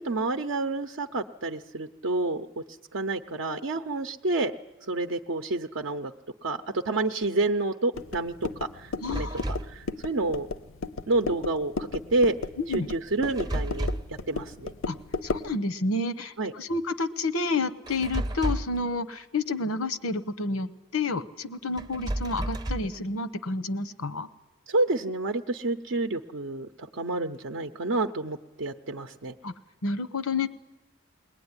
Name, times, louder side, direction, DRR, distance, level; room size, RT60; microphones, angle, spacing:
voice 1, 0.0-2.6 2.9-4.5 4.9-6.1 6.4-9.3 9.6-10.5 11.1-12.4 12.7-14.7 16.4-16.5 24.7-29.3, right 2 dB, 60° right, 5 dB, 0.7 m, -29 dB
sound 1, 7.9-15.6, left 3 dB, 65° left, 0.7 m, -35 dB
voice 2, 9.0-9.5 12.6-12.9 14.9-15.0 15.2-24.3 29.4-29.5 29.8-30.5, left 3 dB, 85° left, 12 dB, 1.0 m, -30 dB
sound 2, 9.0-9.8 13.2-14.2 17.9-18.8 21.8-23.0, right 1 dB, 20° right, 0.7 m, -31 dB
21.5 x 19.0 x 9.7 m, 1.2 s
head